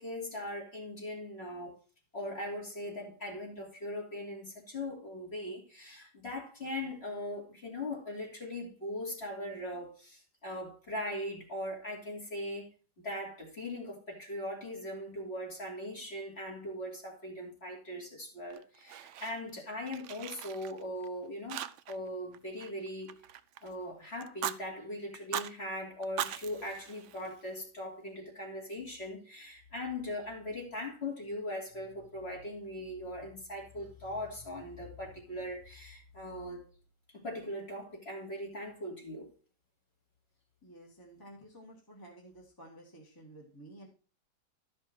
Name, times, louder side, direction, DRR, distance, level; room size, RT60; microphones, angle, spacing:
voice 1, 0.0-1.8 2.1-12.7 13.0-23.2 23.6-36.6 37.1-39.3, left 1 dB, 35° left, 3.0 m, -40 dB
Fire, 18.5-19.6 19.9-21.1 21.5-22.1 22.3-23.7 24.2-24.6 25.1-25.5 26.0-27.6, right 10 dB, 75° right, 0.7 m, -40 dB
voice 2, 40.6-43.9, right 1 dB, 10° left, 1.9 m, -52 dB
12.5 x 5.5 x 4.5 m
omnidirectional pair, 1.9 m